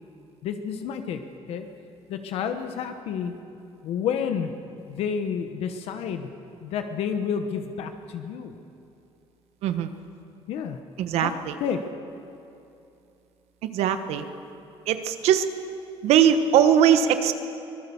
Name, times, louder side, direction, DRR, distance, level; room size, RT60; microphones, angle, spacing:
voice 1, 0.4-1.2 1.5-1.7 2.1-3.3 3.8-4.5 4.9-6.3 6.6-8.5 10.5-10.8 11.2-11.3 11.6-11.8, left 7 dB, 70° left, 7 dB, 1.2 m, -29 dB
voice 2, 11.0-11.5 13.6-14.2 14.9-15.5 16.0-17.3, right 9 dB, 80° right, 9 dB, 1.3 m, -20 dB
24.0 x 17.5 x 7.1 m, 2.7 s
cardioid pair, 175°, 11 cm